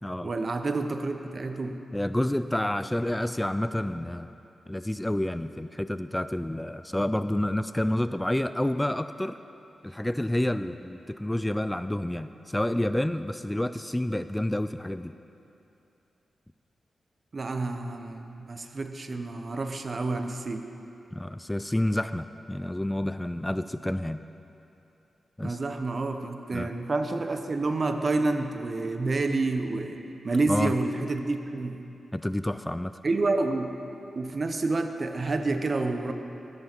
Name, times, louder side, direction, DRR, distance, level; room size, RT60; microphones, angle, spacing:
voice 1, 0.2-1.8 17.3-20.7 25.4-31.8 33.0-33.8 34.2-36.1, right 3 dB, 50° right, 7 dB, 0.8 m, -29 dB
voice 2, 1.9-4.3 4.7-9.4 9.8-15.1 21.1-24.2 25.4-25.6 26.5-26.7 30.5-30.7 32.1-33.0, left 1 dB, 10° left, 12 dB, 0.3 m, -29 dB
13.0 x 9.4 x 4.5 m, 2.9 s
cardioid pair, 50°, 0 cm